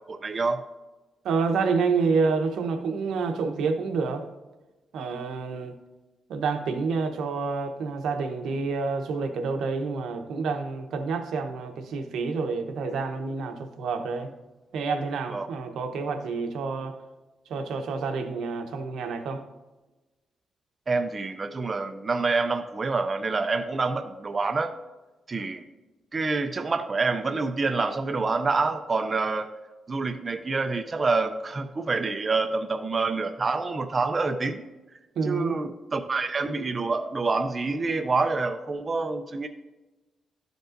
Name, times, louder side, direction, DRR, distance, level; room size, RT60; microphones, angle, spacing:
voice 1, 0.1-0.6 15.3-15.5 20.9-24.7 25.3-25.6 26.1-29.5 29.9-34.6 35.3-39.5, right 3 dB, 30° right, 6 dB, 0.4 m, -27 dB
voice 2, 1.2-4.3 4.9-5.7 6.3-14.3 14.7-16.9 17.5-19.4 35.2-35.6, right 4 dB, 80° right, 6 dB, 0.8 m, -28 dB
12.5 x 5.2 x 2.5 m, 1.1 s
cardioid pair, 145°, 0 cm